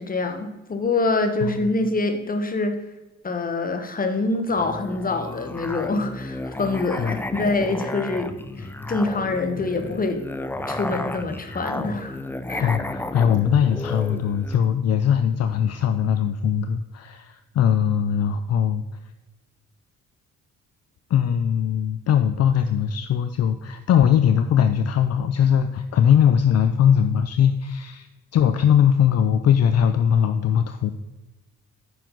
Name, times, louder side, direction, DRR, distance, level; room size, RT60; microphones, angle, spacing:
voice 1, 0.0-2.7 3.2-10.2 10.7-12.2 12.5-12.7, left 3 dB, 30° left, 7 dB, 1.2 m, -25 dB
Musical instrument, 4.5-14.7, left 2 dB, 5° left, 0.5 m, -33 dB
voice 2, 12.6-18.8 21.1-30.9, left 8 dB, 55° left, 9 dB, 0.6 m, -20 dB
9.2 x 6.1 x 4.0 m, 1.2 s
cardioid pair, 90°, 30 cm